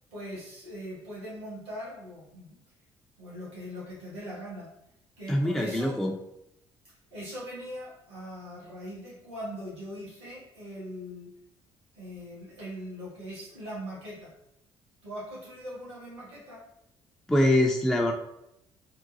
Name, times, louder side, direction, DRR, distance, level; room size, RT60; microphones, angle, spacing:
voice 1, 0.1-2.6 3.2-4.7 5.2-6.0 7.1-11.3 11.9-14.3 15.0-16.6, equal, 80° right, -7 dB, 1.2 m, -41 dB
voice 2, 5.3-6.1 17.3-18.1, left 1 dB, 5° left, 1 dB, 0.3 m, -24 dB
3.8 x 2.2 x 2.5 m, 0.81 s
figure-of-eight pair, 45°, 14 cm